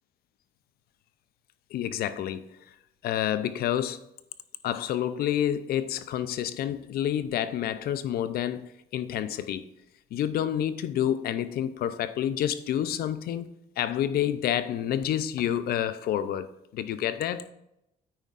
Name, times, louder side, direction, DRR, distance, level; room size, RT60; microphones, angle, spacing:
voice 1, 1.7-2.5 3.0-4.0 4.6-9.7 10.1-13.5 13.8-17.4, left 10 dB, 65° left, 0.6 m, -29 dB
9.4 x 9.0 x 2.5 m
cardioid pair, 110°, 17 cm